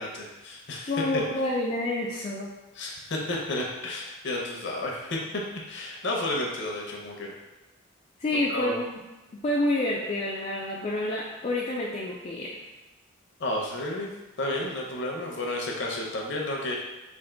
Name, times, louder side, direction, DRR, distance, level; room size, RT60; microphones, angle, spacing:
voice 1, 0.0-0.9 2.7-5.2 5.7-7.3 8.3-8.8 13.4-14.1 14.4-16.8, left 1 dB, 60° left, -1 dB, 0.7 m, -32 dB
voice 2, 0.9-2.5 8.2-9.0 9.4-12.6, left 1 dB, 30° left, -4 dB, 0.3 m, -28 dB
3.4 x 2.5 x 3.7 m, 1.1 s
head